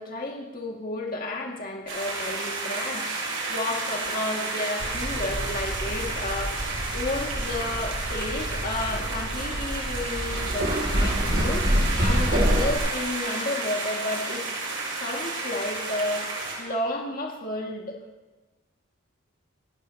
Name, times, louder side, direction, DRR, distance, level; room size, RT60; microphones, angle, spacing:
voice 1, 0.0-3.1 3.5-6.6 6.9-11.7 12.0-14.4 15.0-16.3 16.6-18.0, left 2 dB, 45° left, -1 dB, 2.0 m, -31 dB
sound 1, 1.9-16.6, right 3 dB, 70° right, 6.0 m, -32 dB
sound 2, 4.8-12.8, equal, 45° right, 2.7 m, -27 dB
28.5 x 13.5 x 2.9 m, 1.2 s
head